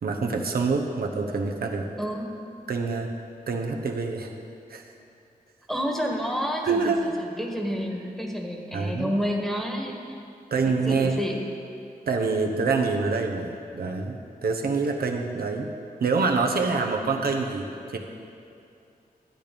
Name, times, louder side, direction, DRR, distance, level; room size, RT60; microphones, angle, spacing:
voice 1, 0.0-1.9 2.7-3.1 3.5-4.3 4.7-4.9 6.6-7.0 8.7-9.1 10.5-11.2 12.1-15.7 16.0-18.0, right 4 dB, 75° right, 2 dB, 1.0 m, -26 dB
voice 2, 2.0-2.3 5.7-9.9 10.6-11.4, equal, ahead, 0 dB, 1.6 m, -29 dB
13.0 x 8.6 x 5.3 m, 2.5 s
wide cardioid pair, 85°, 16 cm